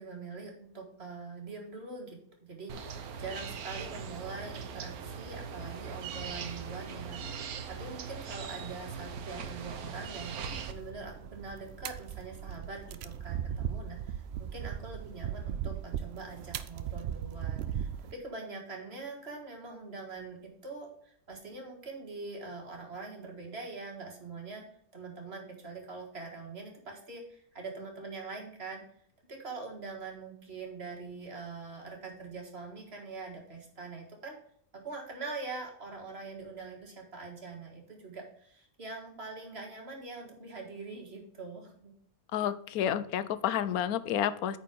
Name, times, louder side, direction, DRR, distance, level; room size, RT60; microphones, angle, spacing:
voice 1, 0.0-24.6 24.9-28.8 29.3-34.4 34.7-41.9, right 3 dB, 45° right, 1 dB, 2.0 m, -43 dB
sound 1, 2.7-10.7, right 6 dB, 85° right, 1.3 m, -40 dB
sound 2, 10.2-18.1, right 9 dB, 65° right, 0.6 m, -38 dB
voice 2, 42.3-44.6, left 10 dB, 80° left, 14 dB, 1.1 m, -30 dB
9.0 x 4.4 x 5.2 m, 0.63 s
omnidirectional pair, 1.5 m